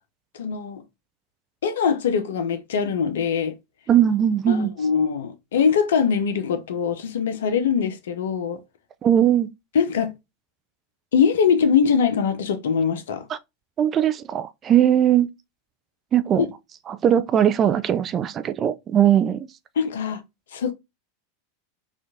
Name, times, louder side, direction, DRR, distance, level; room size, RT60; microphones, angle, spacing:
voice 1, 0.4-0.8 1.6-3.6 4.5-8.6 9.7-10.1 11.1-13.2 19.8-20.2 20.5-20.7, left 6 dB, 65° left, 0.6 m, -22 dB
voice 2, 3.9-4.7 9.0-9.5 13.3-13.4 13.8-15.3 16.1-16.5 16.9-19.5, right 10 dB, 30° right, 0.4 m, -19 dB
4.4 x 2.5 x 2.7 m
figure-of-eight pair, 85°, 0 cm